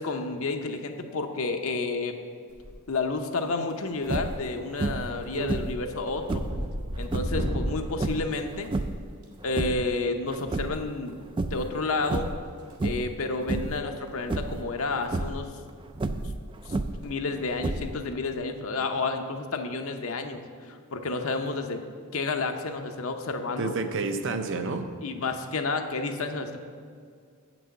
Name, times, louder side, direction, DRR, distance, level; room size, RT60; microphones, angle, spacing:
voice 1, 0.0-2.1 2.9-6.4 7.0-8.7 9.4-11.1 11.5-12.3 12.8-15.5 16.7-16.8 17.0-21.8 22.1-23.7 25.0-26.6, left 3 dB, 65° left, 5 dB, 0.7 m, -30 dB
sound 1, 2.5-3.1 3.4-3.9 4.3-4.5 4.9-9.3 10.6-10.8 12.0-12.8 13.1-13.3 13.8-13.9 14.2-14.3 14.7-14.9 15.1-15.2 16.8-17.0, equal, 80° right, 1.8 m, -35 dB
sound 2, 4.0-4.5 4.8-5.2 5.5-6.6 7.0-7.4 7.9-9.1 9.4-9.9 10.3-11.1 11.4-11.7 12.0-12.5 12.8-13.2 13.5-13.8 14.3-14.6 15.0-15.4 15.9-17.1 17.6-18.1, right 2 dB, 20° right, 0.3 m, -30 dB
voice 2, 5.1-5.6 23.6-24.9, right 3 dB, 55° right, 8 dB, 0.7 m, -30 dB
8.0 x 6.2 x 6.9 m, 2.2 s
head